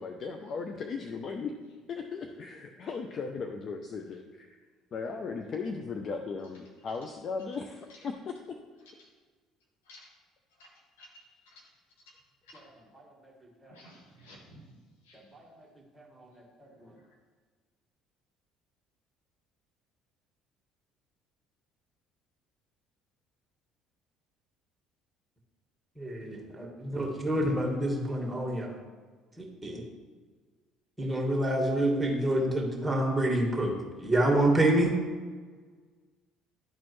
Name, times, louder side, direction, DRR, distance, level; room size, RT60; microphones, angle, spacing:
voice 1, 0.0-1.5 1.9-4.6 4.9-8.3, left 4 dB, 50° left, 4 dB, 0.6 m, -37 dB
voice 2, 11.0-11.6 12.5-12.6 13.7-14.4 15.1-15.2 16.8-16.9, left 1 dB, 85° left, -2 dB, 1.7 m, -54 dB
voice 3, 12.6-13.0 13.6-13.7 15.3-15.5 16.0-16.3 26.0-28.7 29.4-29.8 31.0-34.9, right 1 dB, 10° right, -1 dB, 1.9 m, -28 dB
12.0 x 4.3 x 3.2 m, 1.5 s
hypercardioid pair, 65°, 0 cm